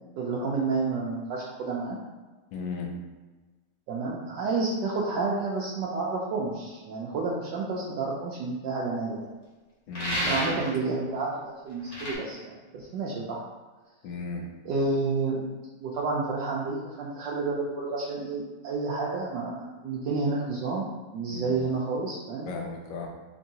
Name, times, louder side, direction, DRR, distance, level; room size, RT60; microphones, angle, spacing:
voice 1, 0.2-2.0 3.9-9.3 10.2-13.4 14.6-20.9 21.1-22.5, right 3 dB, 80° right, -5 dB, 1.2 m, -30 dB
voice 2, 2.5-2.9 9.9-10.5 14.0-14.4 21.3-21.6 22.5-23.1, left 4 dB, 85° left, 1 dB, 1.4 m, -35 dB
sound 1, 9.9-10.7 11.9-12.1, equal, 45° left, 1.4 m, -30 dB
4.4 x 3.0 x 2.8 m, 1.3 s
omnidirectional pair, 1.9 m